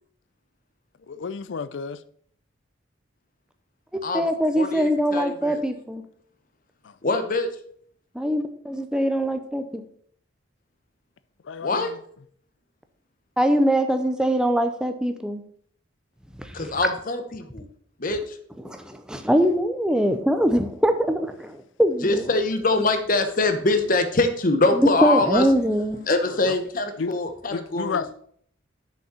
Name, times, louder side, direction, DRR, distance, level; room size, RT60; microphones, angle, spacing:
voice 1, 1.1-2.0 6.8-6.9 11.4-12.0 26.3-26.6 27.0-27.1 27.5-28.1, left 5 dB, 70° left, 0.4 m, -31 dB
voice 2, 3.9-6.0 8.1-9.8 13.4-15.4 16.4-16.6 18.6-22.2 24.7-26.1, equal, 5° right, 0.6 m, -23 dB
voice 3, 4.5-5.6 7.0-7.5 11.6-11.9 16.5-17.7 18.0-18.4 22.0-25.5 26.1-28.0, left 2 dB, 45° left, 1.0 m, -23 dB
6.5 x 5.3 x 6.8 m
head